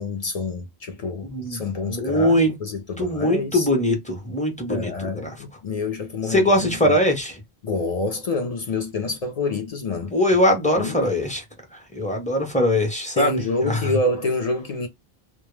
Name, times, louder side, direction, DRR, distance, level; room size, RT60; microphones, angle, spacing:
voice 1, 0.0-3.7 4.7-7.0 7.6-10.2 10.8-11.0 13.2-14.9, left 3 dB, 55° left, 0.4 m, -27 dB
voice 2, 1.3-2.5 3.0-5.3 6.3-7.4 10.1-11.4 11.9-13.8, left 1 dB, 10° left, 0.6 m, -21 dB
2.1 x 2.0 x 3.0 m
omnidirectional pair, 1.0 m